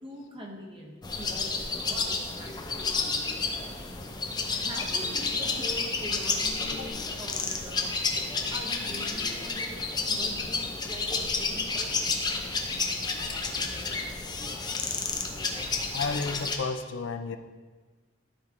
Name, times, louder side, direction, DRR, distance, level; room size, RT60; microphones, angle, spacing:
voice 1, 0.0-2.9 4.5-7.9 8.5-9.8 10.1-11.9, equal, 25° right, -1 dB, 1.3 m, -43 dB
sound 1, 1.0-16.6, left 4 dB, 20° left, 0.6 m, -31 dB
voice 2, 15.9-17.4, left 4 dB, 65° left, 9 dB, 0.5 m, -32 dB
12.5 x 4.6 x 3.8 m, 1.4 s
head